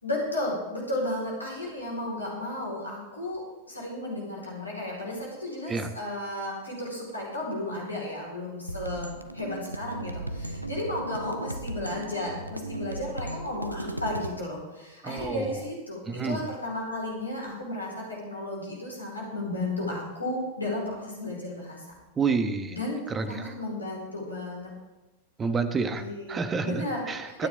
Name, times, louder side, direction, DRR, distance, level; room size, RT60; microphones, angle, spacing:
voice 1, 0.0-9.1 9.3-21.8 22.7-23.0 23.3-24.7 26.0-27.5, left 1 dB, 85° left, -3 dB, 4.8 m, -34 dB
sound 1, 8.7-14.3, right 1 dB, 85° right, 0.8 m, -36 dB
voice 2, 15.0-15.5 16.1-16.4 22.2-22.8 23.1-23.5 25.4-27.5, right 4 dB, 20° right, 9 dB, 1.3 m, -29 dB
24.5 x 9.6 x 3.8 m, 1.1 s
figure-of-eight pair, 90°, 0 cm